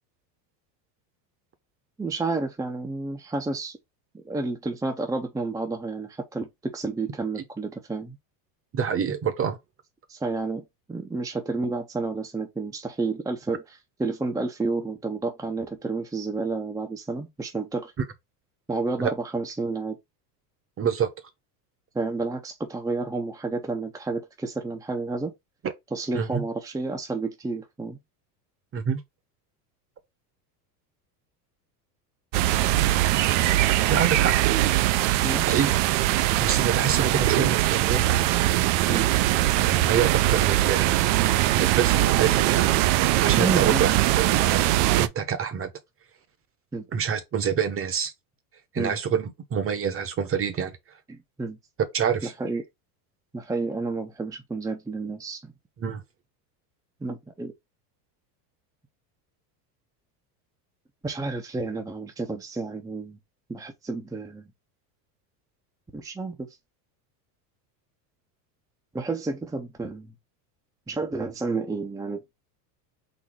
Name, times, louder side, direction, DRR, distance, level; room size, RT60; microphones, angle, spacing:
voice 1, 2.0-3.8 4.1-8.2 10.1-17.9 18.7-20.0 21.9-25.3 25.9-28.0 35.2-35.6 38.9-39.1 43.4-43.8 46.7-46.9 48.8-48.9 51.1-51.6 52.2-52.6 53.3-55.5 57.0-57.5 61.0-63.2 63.5-64.4 65.9-66.5 68.9-70.1 70.9-72.2, right 3 dB, 5° right, 0.6 m, -30 dB
voice 2, 8.7-9.6 19.0-19.1 20.8-21.1 26.1-26.4 28.7-29.0 33.9-34.3 35.4-35.7 36.4-38.0 39.6-41.0 41.5-42.9 43.2-44.5 45.0-45.7 46.9-48.1 48.7-50.7 51.9-52.3 55.8-56.0, right 7 dB, 25° right, 0.9 m, -26 dB
sound 1, 32.3-45.1, right 15 dB, 60° right, 0.6 m, -21 dB
4.2 x 2.7 x 4.6 m
supercardioid pair, 115°, 50 cm